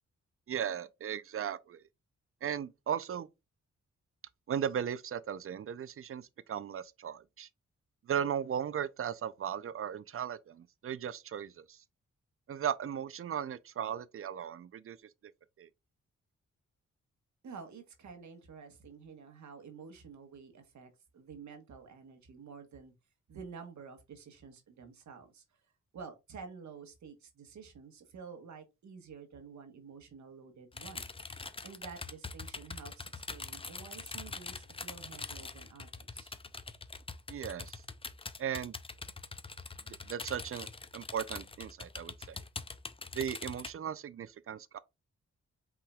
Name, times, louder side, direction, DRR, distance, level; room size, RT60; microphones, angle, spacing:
voice 1, 0.5-1.8 2.4-3.3 4.5-7.5 8.1-11.8 12.5-15.0 15.6-15.7 37.3-37.8 38.4-38.7 40.1-40.7 40.9-42.4 43.1-44.8, right 8 dB, 45° right, 0.5 m, -37 dB
voice 2, 17.4-22.9 23.3-25.4 25.9-31.1 31.6-36.3, right 5 dB, 70° right, 1.3 m, -50 dB
sound 1, 30.7-43.7, left 4 dB, 20° left, 0.5 m, -44 dB
5.7 x 3.7 x 2.3 m
supercardioid pair, 55°, 30 cm